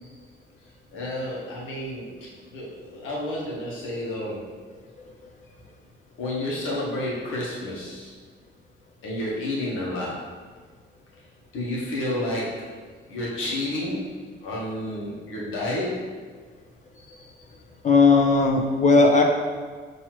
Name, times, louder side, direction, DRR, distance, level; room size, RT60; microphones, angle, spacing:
voice 1, 0.9-4.6 6.2-8.1 9.0-10.3 11.5-12.8 13.1-16.1 16.9-17.3, left 1 dB, 85° left, -4 dB, 1.3 m, -31 dB
voice 2, 17.8-19.2, left 3 dB, 35° left, 1 dB, 0.8 m, -17 dB
5.8 x 3.0 x 3.1 m, 1.5 s
cardioid pair, 90°, 20 cm